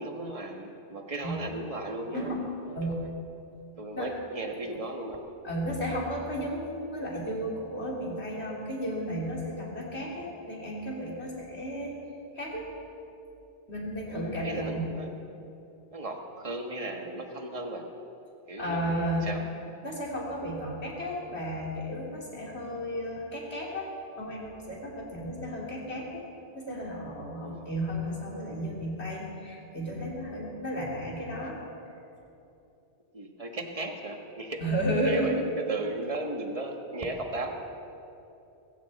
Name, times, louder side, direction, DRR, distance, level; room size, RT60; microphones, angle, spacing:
voice 1, 0.0-2.4 2.8-3.1 3.8-5.2 14.1-15.1 15.9-17.8 18.5-19.4 27.4-27.7 33.1-34.6 35.0-37.5, right 2 dB, 30° right, 3 dB, 1.5 m, -36 dB
voice 2, 5.4-12.0 12.3-12.7 13.7-14.9 18.6-19.4 19.8-23.9 24.2-26.2 26.5-31.6 34.6-35.4, equal, 70° left, -3 dB, 3.3 m, -33 dB
21.5 x 16.0 x 4.1 m, 2.8 s
omnidirectional pair, 1.2 m